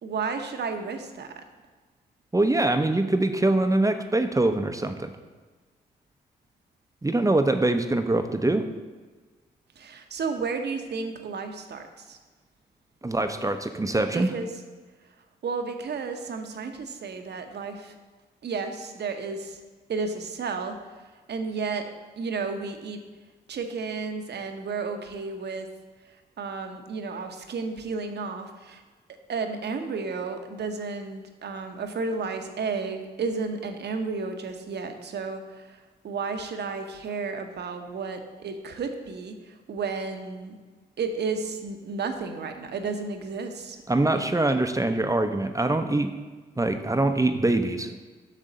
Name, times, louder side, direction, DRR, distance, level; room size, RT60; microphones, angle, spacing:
voice 1, 0.0-1.3 9.8-12.2 14.1-14.5 15.4-17.9 18.4-19.6 19.9-20.7 21.3-21.8 22.2-23.0 23.5-25.7 26.4-28.8 29.3-35.8 36.0-39.3 39.7-40.5 41.0-43.8 44.1-44.3, right 4 dB, 60° right, 6 dB, 0.9 m, -32 dB
voice 2, 2.3-5.1 7.0-8.7 13.0-14.3 43.9-46.1 46.6-47.9, right 2 dB, 15° right, 8 dB, 0.7 m, -23 dB
7.5 x 6.4 x 4.0 m, 1.4 s
hypercardioid pair, 45°, 20 cm